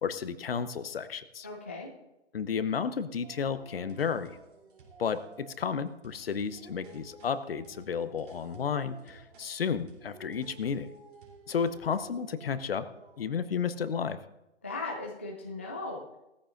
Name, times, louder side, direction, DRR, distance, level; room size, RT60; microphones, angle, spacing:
voice 1, 0.0-1.5 2.3-4.4 5.0-10.9 11.5-12.9 13.2-14.2, left 6 dB, 55° left, 13 dB, 1.0 m, -32 dB
voice 2, 1.4-1.9 14.6-16.2, left 3 dB, 10° left, -1 dB, 0.4 m, -38 dB
Dog, 3.2-6.0 6.5-9.6 10.0-13.5, right 5 dB, 65° right, 3.8 m, -54 dB
sound 1, 3.5-12.1, right 3 dB, 45° right, 3.5 m, -58 dB
18.5 x 14.0 x 2.6 m, 0.94 s
figure-of-eight pair, 145°, 36 cm